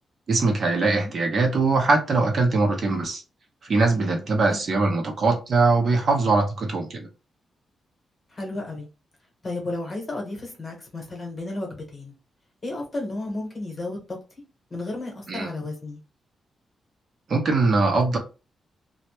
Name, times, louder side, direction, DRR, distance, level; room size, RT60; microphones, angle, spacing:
voice 1, 0.3-3.2 3.6-7.1 15.3-15.5 17.3-18.2, right 3 dB, 45° right, 0.5 m, -22 dB
voice 2, 8.3-8.9 9.4-12.1 12.6-14.2 14.7-16.0, left 2 dB, 30° left, 0.9 m, -33 dB
2.1 x 2.0 x 2.9 m
wide cardioid pair, 150°, 0 cm